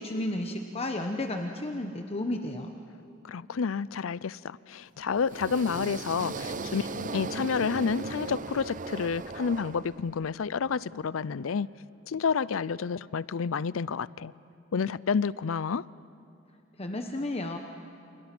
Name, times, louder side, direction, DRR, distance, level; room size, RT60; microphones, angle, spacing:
voice 1, 0.0-2.7 16.8-17.6, left 1 dB, 30° left, 1.1 m, -32 dB
voice 2, 3.2-11.7 12.1-14.3 14.7-15.8, left 5 dB, 90° left, 0.5 m, -30 dB
sound 1, 5.1-10.3, right 3 dB, 40° right, 0.7 m, -37 dB
29.0 x 28.5 x 6.1 m
head